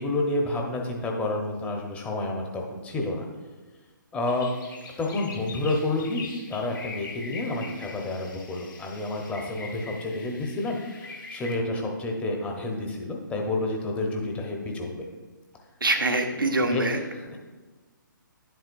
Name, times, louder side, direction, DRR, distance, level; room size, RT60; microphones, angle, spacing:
voice 1, 0.0-3.3 4.1-4.5 5.0-15.1 16.7-17.4, left 2 dB, 10° left, 1 dB, 1.0 m, -29 dB
sound 1, 4.2-11.5, left 4 dB, 75° left, 2.0 m, -43 dB
voice 2, 15.8-17.0, right 2 dB, 90° right, 5 dB, 1.1 m, -24 dB
10.5 x 7.9 x 2.6 m, 1.3 s
figure-of-eight pair, 140°, 11 cm